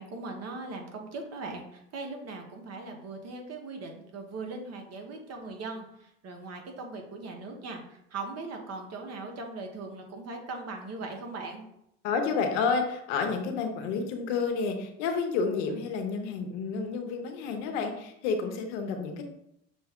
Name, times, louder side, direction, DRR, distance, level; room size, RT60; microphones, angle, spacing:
voice 1, 0.0-11.6, right 3 dB, 45° right, 3 dB, 1.1 m, -39 dB
voice 2, 12.0-19.2, left 5 dB, 75° left, 5 dB, 0.9 m, -30 dB
6.2 x 2.3 x 3.5 m, 0.77 s
supercardioid pair, 85°, 35 cm